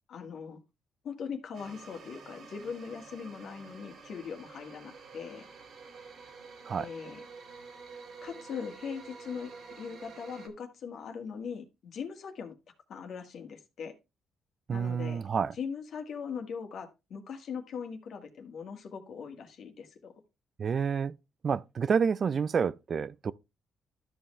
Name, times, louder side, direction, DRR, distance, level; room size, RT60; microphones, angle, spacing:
voice 1, 0.1-0.6 1.0-5.5 6.8-7.2 8.2-9.5 9.8-12.6 12.9-13.9 14.7-15.2 15.5-20.1, left 6 dB, 65° left, 1.8 m, -40 dB
sound 1, 1.5-10.5, right 4 dB, 60° right, 2.1 m, -49 dB
voice 2, 14.7-15.5 20.6-21.1 21.4-23.3, right 6 dB, 45° right, 0.4 m, -29 dB
12.5 x 5.4 x 3.2 m
cardioid pair, 90°, 0 cm